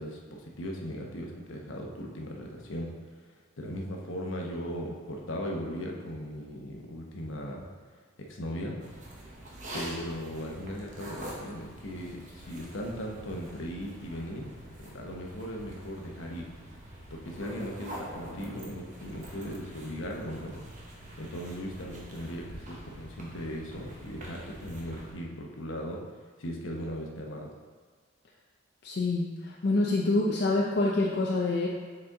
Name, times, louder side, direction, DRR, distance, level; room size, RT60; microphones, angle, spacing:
voice 1, 0.0-2.9 3.3-7.7 8.3-8.8 9.7-14.5 14.9-16.5 17.1-20.6 21.2-26.0 26.4-27.5, equal, 70° left, 0 dB, 0.9 m, -38 dB
sound 1, 8.8-25.1, right 1 dB, 40° right, 1.0 m, -45 dB
voice 2, 28.8-31.7, left 2 dB, 55° left, -2 dB, 0.5 m, -26 dB
6.8 x 4.3 x 3.8 m, 1.5 s
head